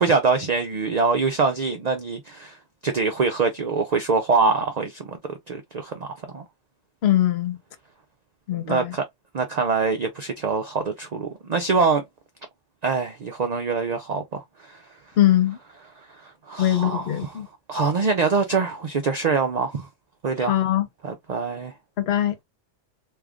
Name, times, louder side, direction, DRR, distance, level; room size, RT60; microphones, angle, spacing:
voice 1, 0.0-2.6 2.8-6.4 8.5-9.0 9.3-12.0 12.8-14.8 16.2-17.4 17.7-19.9 20.2-20.6 21.0-21.7, right 4 dB, 50° right, 0.5 m, -24 dB
voice 2, 7.0-7.6 8.5-8.9 15.2-15.6 16.6-17.5 20.5-20.9 22.0-22.3, left 13 dB, 60° left, 1.0 m, -21 dB
3.0 x 2.4 x 3.5 m
omnidirectional pair, 1.3 m